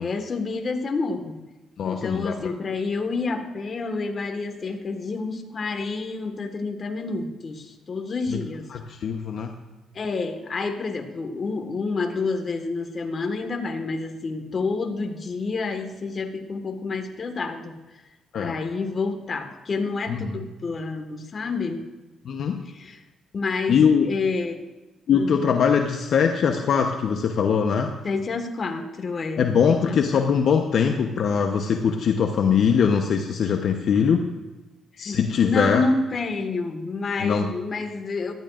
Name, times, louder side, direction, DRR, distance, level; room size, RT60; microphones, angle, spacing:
voice 1, 0.0-1.4 1.8-8.7 9.9-17.8 18.4-21.9 22.7-23.0 23.3-24.5 25.1-25.4 28.0-30.2 35.0-38.3, left 3 dB, 40° left, 5 dB, 1.6 m, -29 dB
voice 2, 1.8-2.5 8.7-9.5 18.3-18.6 20.1-20.3 22.2-22.6 23.7-24.1 25.1-27.9 29.4-34.2 35.0-35.8 37.2-37.4, left 6 dB, 65° left, 4 dB, 0.9 m, -22 dB
18.0 x 13.0 x 2.5 m, 1.1 s
cardioid pair, 90°, 0 cm